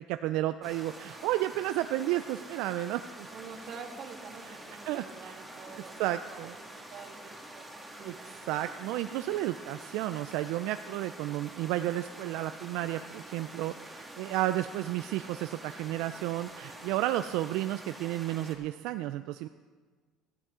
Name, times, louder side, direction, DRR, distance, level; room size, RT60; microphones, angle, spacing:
voice 1, 0.1-3.3 4.5-4.6 4.9-5.4 6.0-6.5 8.0-8.1 8.5-19.5, right 14 dB, 80° right, 10 dB, 0.4 m, -32 dB
sound 1, 0.6-18.6, right 1 dB, 5° right, 1.9 m, -47 dB
voice 2, 3.3-7.7 8.0-8.2, right 5 dB, 50° right, 3 dB, 1.7 m, -47 dB
14.0 x 13.0 x 3.7 m, 1.5 s
cardioid pair, 120°, 0 cm